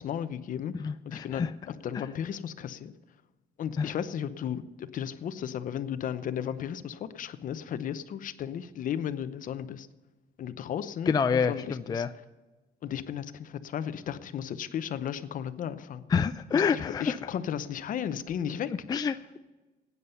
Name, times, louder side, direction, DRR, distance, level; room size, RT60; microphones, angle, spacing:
voice 1, 0.0-2.9 3.6-9.9 10.4-12.1 12.8-16.0 16.5-18.7, left 9 dB, 50° left, 13 dB, 0.8 m, -35 dB
voice 2, 0.8-1.5 1.9-2.0 3.8-3.9 11.1-12.1 16.1-17.2 18.9-19.4, left 6 dB, 25° left, 11 dB, 0.4 m, -27 dB
15.5 x 9.6 x 5.6 m, 1.2 s
cardioid pair, 110°, 17 cm